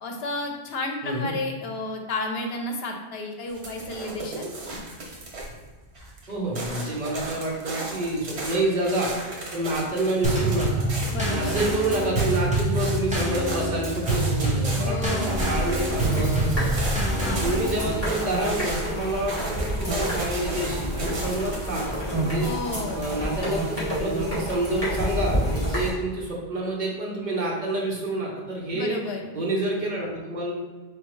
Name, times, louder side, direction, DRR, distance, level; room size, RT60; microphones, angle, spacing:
voice 1, 0.0-4.5 11.1-11.7 14.8-15.5 17.2-17.6 22.4-23.1 28.7-29.3, left 2 dB, 70° left, 3 dB, 0.9 m, -32 dB
voice 2, 1.0-1.4 6.3-9.1 9.5-10.9 11.2-16.7 17.2-22.5 22.9-29.0 29.3-30.5, right 1 dB, 45° right, -4 dB, 1.1 m, -28 dB
sound 1, 3.5-5.7 5.9-21.9, right 2 dB, 80° right, 1.2 m, -36 dB
Drum kit / Snare drum / Bass drum, 10.2-17.9, right 1 dB, 5° right, 1.1 m, -26 dB
sound 2, 15.3-25.9, equal, 15° left, 1.4 m, -29 dB
4.2 x 3.5 x 3.1 m, 1.3 s
omnidirectional pair, 1.1 m